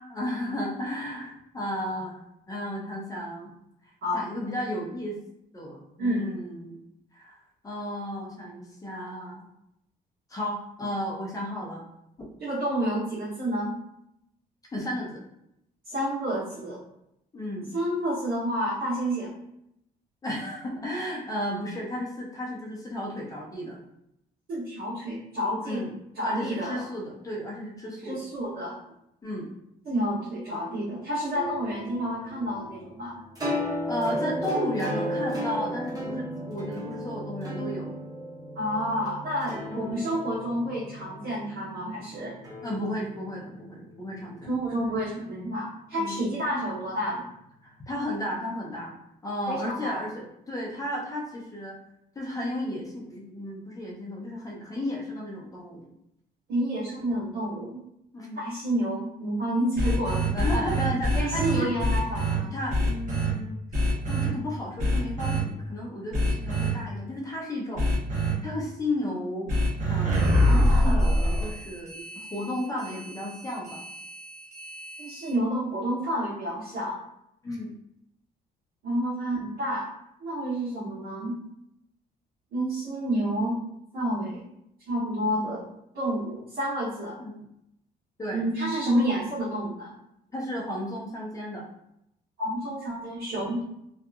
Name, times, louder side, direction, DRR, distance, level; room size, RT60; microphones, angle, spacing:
voice 1, 0.0-3.5 4.1-5.2 5.5-6.8 7.1-7.3 7.6-9.5 10.3-11.8 14.7-15.2 17.3-17.7 20.2-23.8 25.6-25.9 26.2-28.2 29.2-29.5 33.9-37.9 39.7-40.0 42.6-44.6 45.9-46.2 47.6-48.9 49.2-51.8 52.2-55.9 58.1-58.4 60.3-61.7 62.5-67.9 68.4-69.5 69.9-72.0 72.3-73.8 77.4-77.7 87.2-87.4 88.2-88.4 90.3-91.6, equal, 20° left, -2 dB, 0.6 m, -33 dB
voice 2, 12.4-13.8 15.8-16.8 17.7-19.3 24.5-25.8 26.1-26.8 28.0-28.8 29.8-33.2 38.5-42.3 44.5-47.3 49.5-50.0 56.5-57.8 58.3-60.3 61.1-62.5 75.0-77.0 78.8-79.9 80.2-81.4 82.5-83.6 83.9-84.4 84.9-85.7 85.9-87.2 88.3-89.9 92.4-93.6, equal, 65° right, -10 dB, 1.0 m, -29 dB
sound 1, 31.3-45.4, equal, 20° right, 0.9 m, -35 dB
sound 2, 59.8-62.4 62.7-63.3 63.7-64.3 64.8-65.4 66.1-66.7 67.8-68.3 69.5-75.3, equal, 45° right, 0.9 m, -25 dB
2.7 x 2.4 x 2.3 m, 0.79 s
cardioid pair, 140°, 17 cm